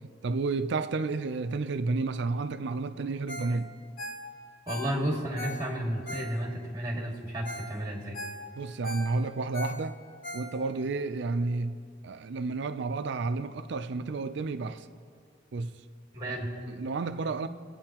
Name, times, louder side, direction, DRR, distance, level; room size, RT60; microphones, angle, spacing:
voice 1, 0.2-3.7 8.6-10.0 10.3-11.7 12.0-14.8 15.5-15.7 16.3-16.4 16.7-17.5, right 3 dB, 65° right, 0.5 m, -31 dB
Ringtone, 3.3-3.6 3.8-6.7 7.2-7.3 7.5-7.7 8.0-10.9 11.3-11.4, left 1 dB, 50° left, 1.4 m, -40 dB
voice 2, 4.7-8.2 16.1-16.5, right 1 dB, 20° right, 2.0 m, -32 dB
25.5 x 8.7 x 2.9 m
head